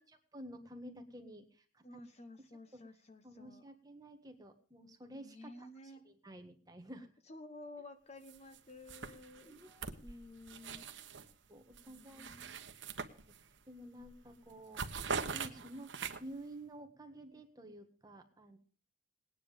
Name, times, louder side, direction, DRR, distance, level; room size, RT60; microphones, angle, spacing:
voice 1, 0.0-2.0 2.7-2.8 3.2-7.1 9.0-9.2 9.4-10.2 10.6-10.9 11.5-12.3 13.4-14.8 15.1-18.6, right 1 dB, 20° right, 5 dB, 1.6 m, -52 dB
voice 2, 1.8-3.7 5.2-6.1 7.3-9.6 10.0-11.2 11.9-12.7, left 2 dB, 30° left, 9 dB, 1.0 m, -53 dB
sound 1, 8.3-8.6 8.9-11.3 11.7-13.6 14.0-14.2 14.5-16.4, right 5 dB, 65° right, 1.2 m, -42 dB
18.5 x 9.8 x 5.1 m, 0.42 s
head